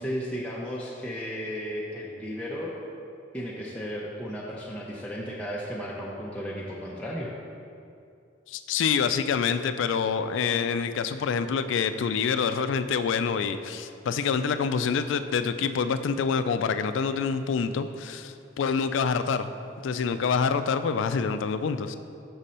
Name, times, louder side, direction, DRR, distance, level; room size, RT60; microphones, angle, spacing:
voice 1, 0.0-2.7 3.3-7.3, equal, 5° left, -6 dB, 0.5 m, -34 dB
voice 2, 8.5-19.5 19.8-22.0, left 6 dB, 75° left, 11 dB, 0.3 m, -26 dB
6.2 x 5.2 x 4.2 m, 2.5 s
head